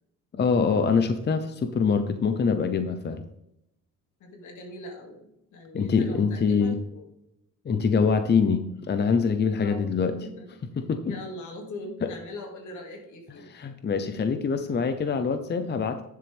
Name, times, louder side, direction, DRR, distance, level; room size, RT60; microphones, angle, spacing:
voice 1, 0.3-3.2 5.7-6.8 7.6-10.1 10.8-11.2 12.0-12.1 13.5-16.0, left 5 dB, 35° left, 9 dB, 0.8 m, -24 dB
voice 2, 4.2-7.1 9.6-9.8 10.2-10.5 11.0-13.5, left 1 dB, 80° left, 2 dB, 2.4 m, -41 dB
9.9 x 7.2 x 3.5 m, 0.81 s
cardioid pair, 90°, 30 cm